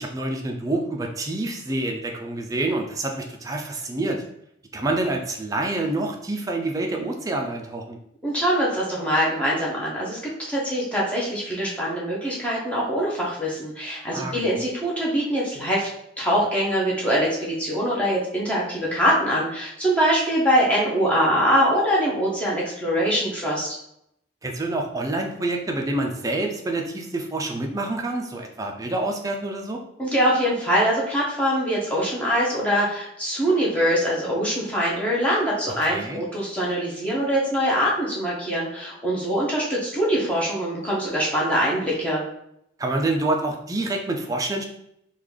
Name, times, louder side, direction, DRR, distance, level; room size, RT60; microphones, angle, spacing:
voice 1, 0.0-4.2 4.7-8.0 14.1-14.6 24.4-29.8 35.8-36.2 42.8-44.6, right 2 dB, 15° right, 1 dB, 0.4 m, -27 dB
voice 2, 8.2-15.9 16.2-23.7 30.0-42.2, equal, 5° left, -6 dB, 0.7 m, -23 dB
3.8 x 2.3 x 3.2 m, 0.75 s
head